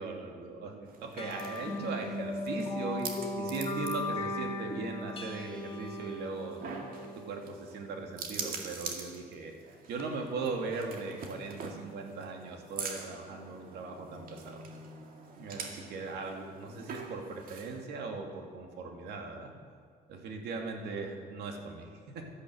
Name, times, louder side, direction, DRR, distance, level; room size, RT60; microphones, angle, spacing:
voice 1, 0.0-6.8 7.2-14.7 15.4-19.5 20.1-22.3, right 3 dB, 80° right, 2 dB, 2.4 m, -39 dB
sound 1, 0.9-17.9, right 4 dB, 55° right, 2.2 m, -45 dB
sound 2, 1.2-8.0, left 1 dB, 35° left, 2.1 m, -37 dB
13.0 x 11.0 x 7.8 m, 2.2 s
cardioid pair, 110°, 17 cm